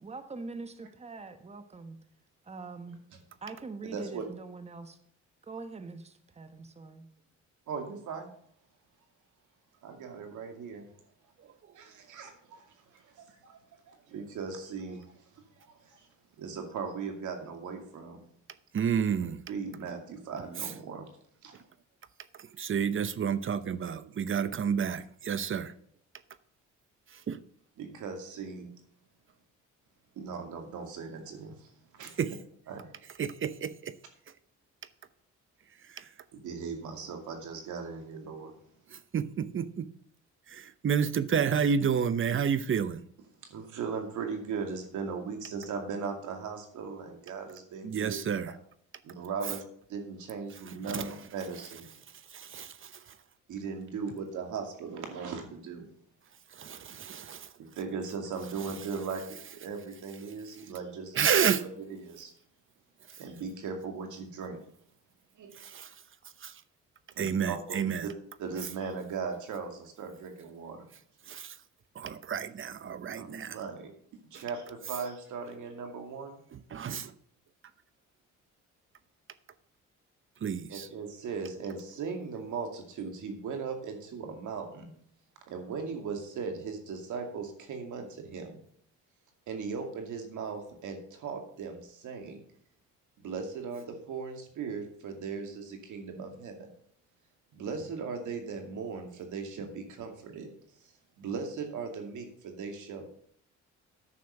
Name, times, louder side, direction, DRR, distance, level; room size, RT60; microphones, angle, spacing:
voice 1, 0.0-2.0 2.4-3.1 3.4-5.0 5.4-7.0, right 3 dB, 20° right, 1.1 m, -43 dB
voice 2, 3.8-4.2 7.7-8.3 9.8-10.9 11.7-13.6 13.9-15.0 15.6-16.1 16.4-18.2 19.5-21.0 21.4-21.5 27.8-28.7 30.2-31.7 31.9-32.1 32.7-32.9 36.3-38.5 43.5-48.2 49.0-49.6 49.9-51.9 53.5-55.8 57.6-61.3 61.6-62.3 63.2-64.6 65.4-65.5 67.2-68.1 68.4-70.9 73.2-73.9 74.3-76.4 80.7-84.9 85.5-88.6 89.5-92.4 93.2-96.7 97.5-100.5 101.2-103.0, right 5 dB, 80° right, 2.4 m, -38 dB
voice 3, 18.7-19.4 20.6-20.7 22.4-25.7 27.1-27.4 32.2-32.3 33.2-34.0 35.9-36.1 38.9-39.9 40.5-43.1 47.8-48.6 50.9-51.1 52.3-53.2 56.5-57.5 61.1-61.7 63.1-63.2 65.5-65.9 66.4-66.6 67.2-68.1 71.3-71.6 71.9-73.6 74.3-74.4 76.5-77.1 80.4-80.9, right 7 dB, 45° right, 0.8 m, -30 dB
9.7 x 6.6 x 6.5 m
cardioid pair, 90°, 30 cm